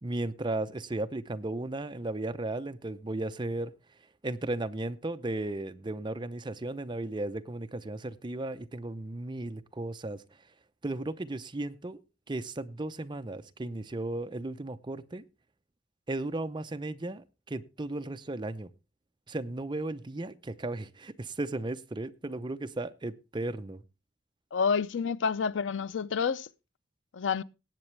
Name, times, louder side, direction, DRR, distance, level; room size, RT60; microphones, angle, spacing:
voice 1, 0.0-3.7 4.2-10.2 10.8-15.2 16.1-18.7 19.3-23.8, right 2 dB, 25° right, 0.7 m, -35 dB
voice 2, 24.5-26.5 27.1-27.4, left 6 dB, 90° left, 0.5 m, -29 dB
18.5 x 7.9 x 3.2 m
head